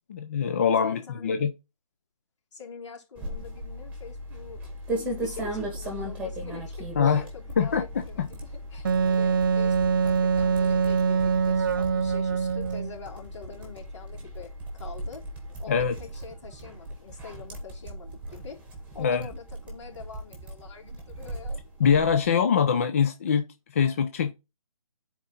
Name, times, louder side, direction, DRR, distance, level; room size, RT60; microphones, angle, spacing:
voice 1, 0.1-1.5 7.0-7.2 7.6-7.8 8.2-8.3 15.7-15.9 19.0-19.3 21.8-23.4 23.7-24.3, left 7 dB, 25° left, 0.4 m, -23 dB
voice 2, 0.7-1.4 2.5-15.3 15.6-18.6 18.9-21.6, left 6 dB, 55° left, 3.7 m, -45 dB
sound 1, 3.2-22.3, right 1 dB, 5° right, 1.9 m, -37 dB
Wind instrument woodwind instrument, 8.8-12.9, right 5 dB, 40° right, 0.4 m, -24 dB
10.0 x 4.5 x 3.9 m
hypercardioid pair, 160°, 18 cm